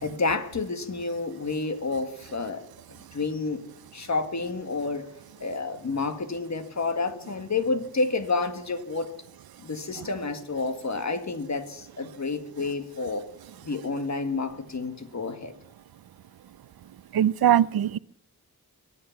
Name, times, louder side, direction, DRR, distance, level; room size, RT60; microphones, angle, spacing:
voice 1, 0.0-2.7 3.1-3.7 3.9-5.1 5.4-9.1 9.6-13.3 13.6-15.5, left 3 dB, 50° left, 7 dB, 1.8 m, -29 dB
voice 2, 17.1-18.0, right 10 dB, 75° right, 19 dB, 0.6 m, -21 dB
23.5 x 10.0 x 5.9 m, 0.70 s
wide cardioid pair, 90°, 37 cm